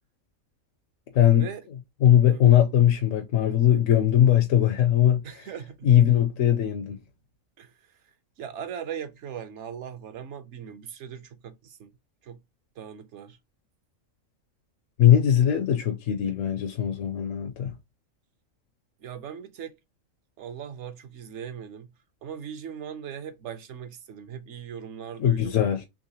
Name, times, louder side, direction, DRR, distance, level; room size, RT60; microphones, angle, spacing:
voice 1, 1.1-1.5 2.0-5.4 5.8-7.0 15.0-17.8 25.2-25.8, left 10 dB, 75° left, 1.0 m, -20 dB
voice 2, 5.2-5.9 7.6-7.9 8.4-11.9 12.2-12.4 12.8-13.4 19.0-19.8 20.4-21.9 22.2-25.6, right 8 dB, 65° right, 0.9 m, -39 dB
3.7 x 3.2 x 2.7 m
omnidirectional pair, 1.4 m